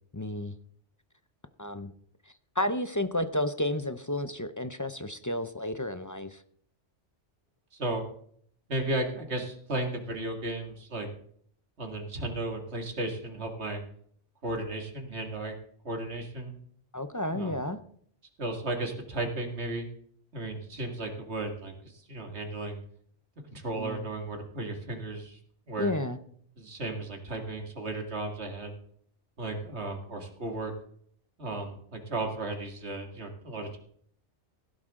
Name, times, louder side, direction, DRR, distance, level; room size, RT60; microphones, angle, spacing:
voice 1, 0.1-0.5 1.6-1.9 2.6-6.4 16.9-17.8 23.8-24.1 25.8-26.2, left 1 dB, 20° left, 10 dB, 0.5 m, -31 dB
voice 2, 7.7-8.0 8.7-11.1 11.8-13.8 14.4-15.5 15.8-16.6 17.3-17.6 18.4-19.9 20.3-22.8 23.5-25.4 25.7-25.9 26.6-28.7 29.4-30.7 31.4-33.8, right 2 dB, 65° right, 3 dB, 2.5 m, -34 dB
16.5 x 11.5 x 3.7 m, 0.63 s
omnidirectional pair, 1.2 m